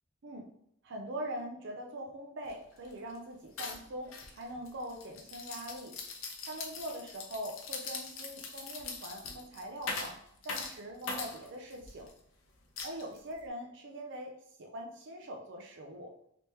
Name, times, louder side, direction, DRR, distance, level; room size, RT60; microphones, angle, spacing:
voice 1, 0.8-5.9 6.5-10.2 10.4-12.1 12.8-16.1, equal, 60° right, 2 dB, 0.5 m, -42 dB
sound 1, 2.4-2.5 2.8-3.2 3.6-12.1 12.8-13.4, left 4 dB, 70° left, 0.6 m, -42 dB
3.3 x 2.9 x 3.1 m, 0.69 s
head